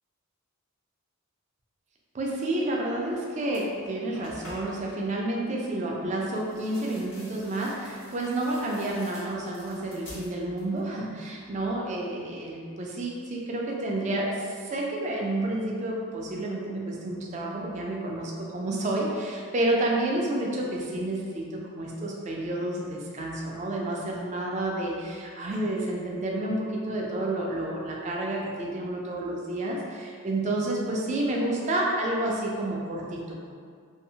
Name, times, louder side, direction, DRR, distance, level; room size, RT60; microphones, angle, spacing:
voice 1, 2.1-33.5, right 1 dB, 35° right, -2 dB, 0.3 m, -30 dB
sound 1, 3.0-3.1 3.5-4.9 6.3-10.9 11.2-11.8, equal, 55° left, 0.9 m, -48 dB
2.6 x 2.0 x 2.7 m, 2.1 s
head